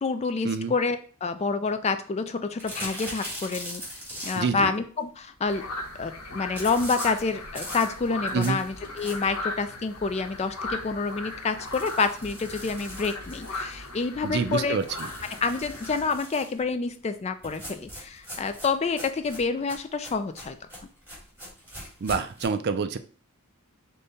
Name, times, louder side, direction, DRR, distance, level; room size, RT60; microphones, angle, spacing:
voice 1, 0.0-3.8 4.2-5.7 6.0-14.8 15.4-20.6, left 4 dB, 30° left, 9 dB, 0.3 m, -28 dB
sound 1, 2.6-4.7 6.5-9.5 9.9-10.0 10.3-10.4 10.7-10.8 11.5-14.0 14.8-16.6 17.4-22.5, equal, 10° right, 2.1 m, -41 dB
voice 2, 4.4-4.7 8.3-8.6 14.2-14.9 22.0-23.0, right 5 dB, 50° right, 10 dB, 0.4 m, -27 dB
sound 2, 5.5-16.1, left 2 dB, 90° left, 0.9 m, -38 dB
5.1 x 2.3 x 4.1 m, 0.41 s
head